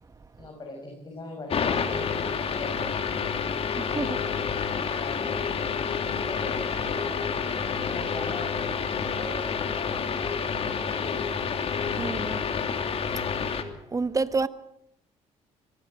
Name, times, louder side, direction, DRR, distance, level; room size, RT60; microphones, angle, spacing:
voice 1, 0.4-2.8 4.9-5.6 6.0-9.5 9.7-10.9, left 2 dB, 35° left, 6.3 m, -41 dB
sound 1, 1.5-13.6, left 6 dB, 50° left, 2.7 m, -29 dB
voice 2, 3.8-4.2 11.9-12.4 13.9-14.5, right 4 dB, 25° right, 1.3 m, -28 dB
24.0 x 19.5 x 7.7 m
cardioid pair, 100°, 13 cm